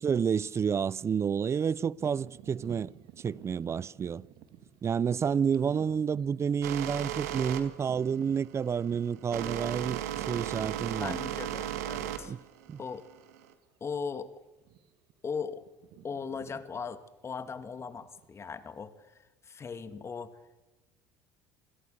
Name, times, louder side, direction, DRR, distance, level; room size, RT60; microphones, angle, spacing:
voice 1, 0.0-2.9 3.2-4.3 4.8-11.2 12.2-12.4 12.7-12.8, right 7 dB, 35° right, 0.6 m, -30 dB
sound 1, 2.0-11.8 12.4-12.5 13.2-13.4 13.7-13.9 14.6-15.1 15.4-18.8, right 10 dB, 65° right, 2.1 m, -52 dB
sound 2, 6.6-13.5, right 11 dB, 80° right, 2.1 m, -36 dB
voice 2, 10.6-12.3 12.8-13.0 13.8-14.3 15.2-15.6 16.0-20.3, left 5 dB, 30° left, 2.2 m, -39 dB
26.5 x 17.5 x 6.7 m
hypercardioid pair, 75°, 8 cm